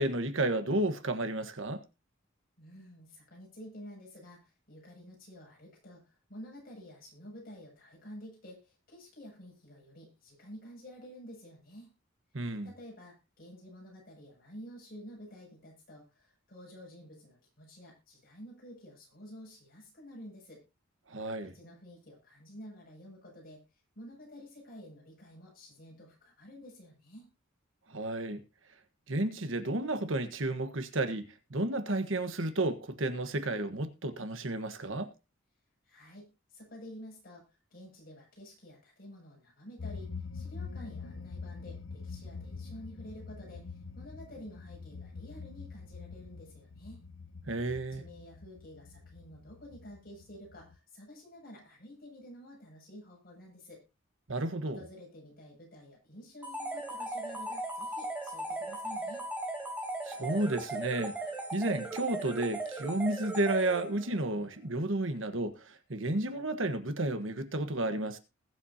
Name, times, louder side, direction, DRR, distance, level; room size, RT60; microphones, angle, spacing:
voice 1, 0.0-1.8 12.3-12.7 21.1-21.5 27.9-28.4 29.1-35.1 47.5-48.0 54.3-54.8 60.0-61.2 61.5-68.2, right 2 dB, 70° right, 1.4 m, -32 dB
voice 2, 2.6-11.9 12.6-20.6 21.4-23.6 24.0-27.3 35.8-37.4 37.7-47.0 47.9-53.8 54.7-59.2, equal, 50° left, 7.6 m, -50 dB
sound 1, 39.8-50.8, left 4 dB, 70° left, 0.7 m, -45 dB
sound 2, 56.4-64.2, right 2 dB, 10° right, 3.5 m, -38 dB
20.5 x 7.8 x 2.9 m
head